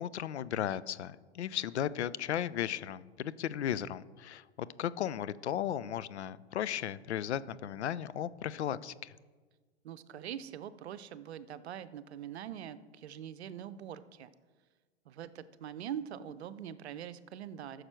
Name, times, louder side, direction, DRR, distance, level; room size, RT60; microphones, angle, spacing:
voice 1, 0.0-9.1, left 10 dB, 75° left, 17 dB, 0.5 m, -35 dB
voice 2, 9.8-14.3 15.1-17.8, right 9 dB, 70° right, 14 dB, 0.7 m, -43 dB
14.0 x 6.5 x 4.5 m, 1.4 s
figure-of-eight pair, 95°, 34 cm